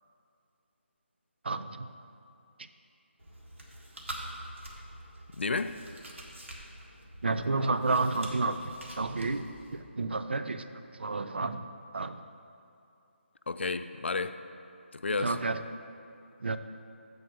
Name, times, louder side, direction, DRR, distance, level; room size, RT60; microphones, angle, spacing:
voice 1, 1.4-1.9 7.2-8.6 9.0-10.7 10.9-11.7 11.9-12.2 15.2-15.6 16.4-16.6, right 3 dB, 55° right, 10 dB, 0.4 m, -30 dB
Chewing mastication, 3.2-9.8, right 1 dB, 75° right, 1.6 m, -46 dB
voice 2, 5.4-5.8 13.5-14.4 14.9-15.4, left 4 dB, 65° left, 11 dB, 0.4 m, -31 dB
7.8 x 4.7 x 6.2 m, 2.6 s
figure-of-eight pair, 180°, 7 cm